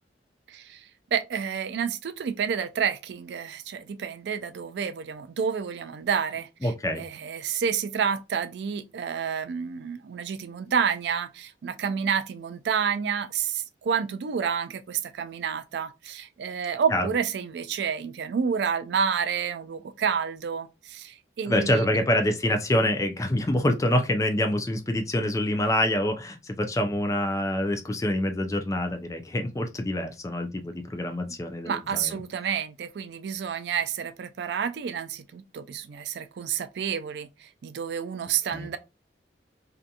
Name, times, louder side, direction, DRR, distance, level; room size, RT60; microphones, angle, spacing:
voice 1, 0.5-22.0 31.7-38.8, right 7 dB, 70° right, 0.3 m, -29 dB
voice 2, 6.6-7.0 16.9-17.1 21.5-32.2 38.5-38.7, left 1 dB, 15° left, 0.4 m, -26 dB
2.7 x 2.5 x 2.2 m
head